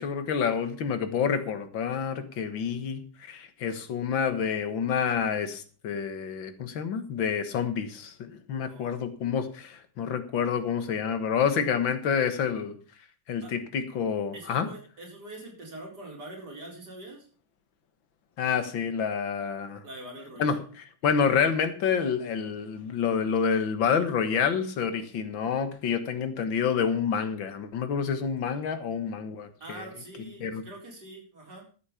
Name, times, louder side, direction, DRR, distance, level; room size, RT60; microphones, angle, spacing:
voice 1, 0.0-12.8 13.3-14.7 18.4-19.8 20.4-20.6 21.0-29.9 30.4-30.6, left 7 dB, 90° left, 10 dB, 2.2 m, -28 dB
voice 2, 8.6-9.1 13.4-13.5 14.3-17.3 19.8-20.6 25.0-25.1 29.6-31.7, right 1 dB, 60° right, -1 dB, 4.9 m, -44 dB
13.0 x 8.3 x 5.7 m, 0.38 s
omnidirectional pair, 2.0 m